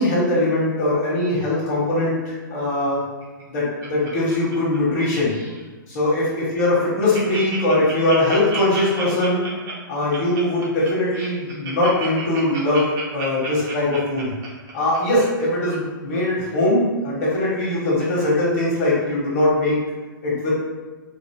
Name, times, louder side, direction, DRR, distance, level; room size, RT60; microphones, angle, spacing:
voice 1, 0.0-3.0 3.5-5.3 5.9-6.3 6.5-9.4 9.9-14.3 14.7-19.8 20.2-20.5, left 1 dB, 45° left, -6 dB, 1.4 m, -21 dB
Laughter, 3.2-5.0 5.2-5.6 6.1-6.2 6.5-6.6 6.8-15.2 15.7-15.8, right 4 dB, 30° right, 0.7 m, -33 dB
2.8 x 2.0 x 3.4 m, 1.3 s
hypercardioid pair, 130°, 11 cm